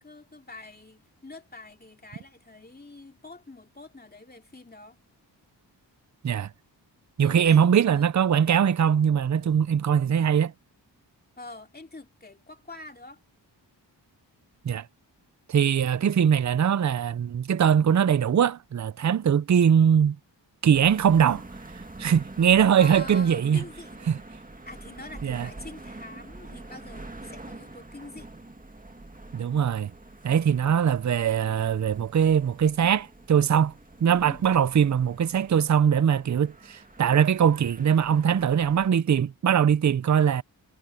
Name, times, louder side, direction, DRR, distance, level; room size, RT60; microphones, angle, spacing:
voice 1, 0.0-5.0 7.2-8.1 9.4-9.5 11.4-13.2 22.7-24.2 24.6-28.3 34.2-34.5, left 2 dB, 20° left, 2.6 m, -45 dB
voice 2, 7.2-10.5 14.6-14.9 15.5-20.2 20.6-21.4 22.0-23.6 24.1-24.2 25.2-25.5 29.3-29.9 30.2-33.7 34.0-40.4, right 8 dB, 40° right, 0.6 m, -21 dB
sound 1, 20.7-38.9, right 2 dB, 20° right, 1.9 m, -45 dB
cardioid pair, 65°, 44 cm